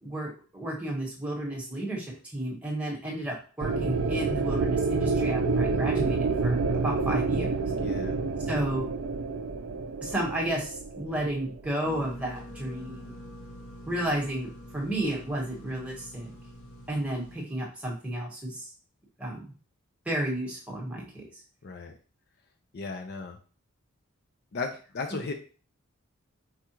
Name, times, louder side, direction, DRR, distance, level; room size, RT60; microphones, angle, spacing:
voice 1, 0.0-2.1 2.3-7.5 8.5-8.9 10.0-13.1 13.9-16.3 16.9-18.7 19.2-19.5 20.0-21.3 25.1-25.2, right 1 dB, 5° right, -3 dB, 1.2 m, -32 dB
sound 1, 3.6-11.7, right 4 dB, 65° right, 0.4 m, -28 dB
voice 2, 7.8-8.2 21.6-21.9 22.7-23.4 24.5-25.3, left 4 dB, 45° left, 4 dB, 0.4 m, -35 dB
sound 2, 11.8-17.4, equal, 80° left, 1.0 m, -45 dB
4.8 x 2.3 x 4.4 m, 0.38 s
head